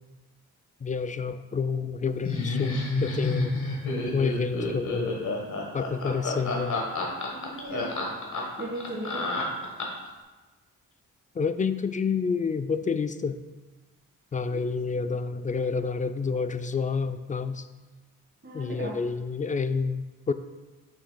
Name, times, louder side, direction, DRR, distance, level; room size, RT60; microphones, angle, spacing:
voice 1, 0.8-3.6 4.1-5.2 5.7-6.8 11.4-13.4 14.3-17.7 18.5-20.3, left 5 dB, 25° left, 11 dB, 0.3 m, -29 dB
Laughter, 2.2-10.1, left 2 dB, 55° left, 1.4 m, -29 dB
voice 2, 7.3-7.9 8.6-9.3 14.5-14.6 14.9-15.0 18.4-18.9, right 1 dB, 35° right, -7 dB, 1.7 m, -37 dB
6.9 x 6.2 x 2.3 m, 1.2 s
cardioid pair, 60°, 35 cm